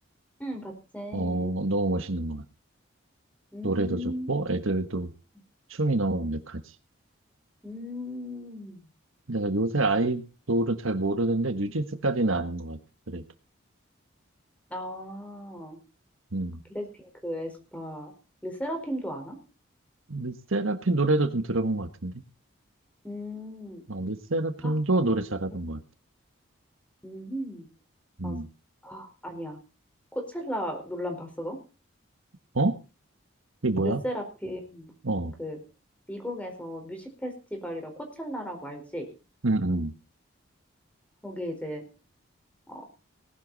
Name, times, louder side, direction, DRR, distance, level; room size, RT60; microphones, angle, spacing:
voice 1, 0.4-1.6 3.5-4.3 7.6-8.8 14.7-15.8 16.7-18.1 18.4-19.4 23.0-23.8 24.6-24.7 27.0-27.7 28.2-28.3 28.8-29.6 30.1-31.6 33.8-34.9 35.4-35.6 36.1-39.1 41.2-41.8 42.7-42.8, equal, 5° left, 4 dB, 4.3 m, -36 dB
voice 2, 1.1-2.4 3.6-4.0 4.3-5.1 5.7-6.6 9.3-12.8 13.1-13.2 16.3-16.6 20.1-22.1 23.9-25.8 28.2-28.5 32.5-32.7 33.6-34.0 35.0-35.3 39.4-39.9, right 2 dB, 80° right, 9 dB, 1.5 m, -27 dB
19.0 x 11.5 x 4.1 m, 0.33 s
head